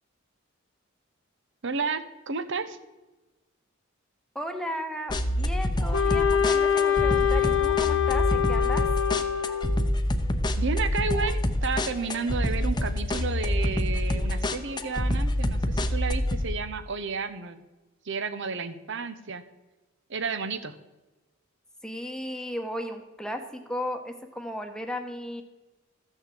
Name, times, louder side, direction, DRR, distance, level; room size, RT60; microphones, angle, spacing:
voice 1, 1.6-2.8 10.6-17.6 18.0-19.4 20.1-20.7, right 4 dB, 65° right, 12 dB, 1.0 m, -32 dB
voice 2, 4.3-8.9 21.8-25.4, left 1 dB, 5° left, 5 dB, 1.1 m, -35 dB
sound 1, 5.1-16.4, left 1 dB, 20° left, 0.8 m, -27 dB
Wind instrument woodwind instrument, 5.9-9.9, left 9 dB, 90° left, 1.6 m, -25 dB
14.0 x 6.7 x 7.6 m, 1.1 s
head